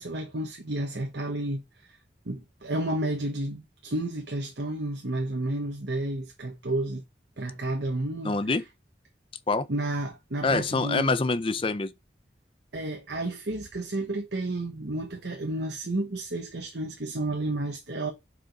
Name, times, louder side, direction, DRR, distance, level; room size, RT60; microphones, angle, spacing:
voice 1, 0.0-1.6 1.9-2.0 2.3-7.0 7.4-8.3 9.7-11.1 12.7-18.1, right 1 dB, 70° right, 1.1 m, -31 dB
voice 2, 8.2-8.6 9.5-9.7 10.4-11.9, left 3 dB, 30° left, 0.5 m, -25 dB
6.0 x 4.9 x 3.9 m
head